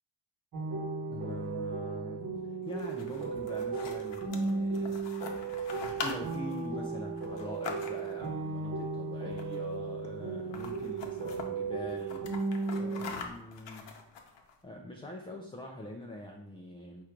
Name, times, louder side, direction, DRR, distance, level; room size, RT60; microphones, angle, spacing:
sound 1, 0.5-13.1, right 4 dB, 45° right, 1.0 m, -35 dB
voice 1, 1.1-5.3 6.0-12.3 12.7-13.9 14.6-17.0, left 1 dB, 10° left, 0 dB, 0.3 m, -44 dB
sound 2, 2.6-8.3 9.3-9.8 10.0-10.1 10.4-11.5 11.9-14.5, left 5 dB, 70° left, 0.8 m, -43 dB
4.6 x 2.5 x 4.4 m, 0.78 s
cardioid pair, 120°, 46 cm